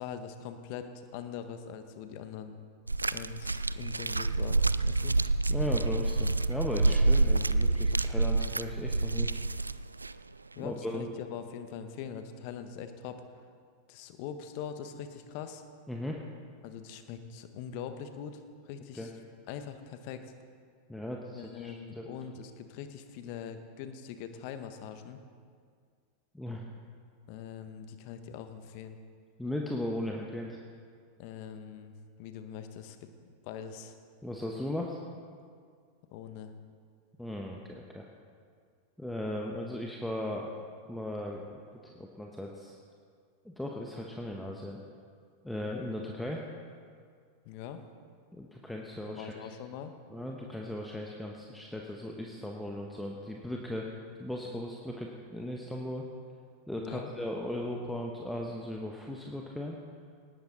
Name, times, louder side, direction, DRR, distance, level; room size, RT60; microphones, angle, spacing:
voice 1, 0.0-2.6 3.1-5.2 10.5-13.2 13.9-15.6 16.6-19.1 19.5-20.3 21.3-25.2 27.3-29.0 31.2-33.0 33.2-33.9 36.1-36.5 47.4-47.8 49.1-49.9 56.8-57.1, left 8 dB, 45° left, 8 dB, 1.4 m, -42 dB
sound 1, 2.9-10.1 11.0-11.1, right 3 dB, 80° right, 0.4 m, -27 dB
voice 2, 5.5-9.3 10.6-11.1 15.9-16.2 18.9-19.1 20.9-22.2 26.3-26.6 29.4-30.6 34.2-35.0 37.2-38.0 39.0-40.5 40.9-42.8 43.4-44.8 45.4-46.4 48.3-49.5 50.1-53.9 54.2-56.0 56.7-59.8, left 1 dB, 5° left, 0 dB, 1.4 m, -37 dB
19.0 x 17.0 x 4.1 m, 2.1 s
figure-of-eight pair, 90°, 0 cm